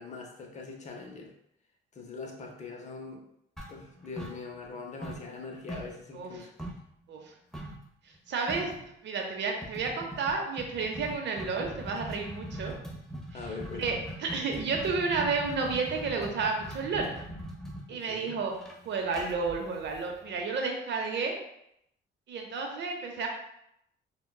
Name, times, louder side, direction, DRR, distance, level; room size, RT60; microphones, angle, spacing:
voice 1, 0.0-1.3 1.9-3.2 3.7-6.5 13.3-14.0 17.9-18.4, left 4 dB, 35° left, 1 dB, 0.7 m, -42 dB
sound 1, 3.6-4.8 5.0-6.9 7.5-7.8 8.1-8.2 8.5-8.8 9.6-20.4, equal, ahead, 0.7 m, -41 dB
voice 2, 6.1-6.5 7.1-7.3 8.0-8.7 9.0-12.7 13.3-17.1 17.9-18.5 18.8-21.4 22.3-23.3, right 4 dB, 65° right, 2 dB, 0.7 m, -31 dB
3.7 x 2.2 x 2.2 m, 0.77 s
cardioid pair, 90°, 20 cm